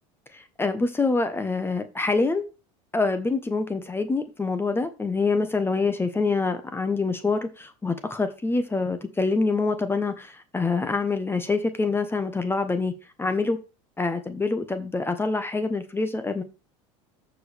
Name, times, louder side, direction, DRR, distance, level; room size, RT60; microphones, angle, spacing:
voice 1, 0.3-2.4 2.9-12.9 13.2-13.6 14.0-16.4, left 3 dB, 15° left, 1.1 m, -26 dB
14.0 x 5.1 x 3.4 m
hypercardioid pair, 90°, 16 cm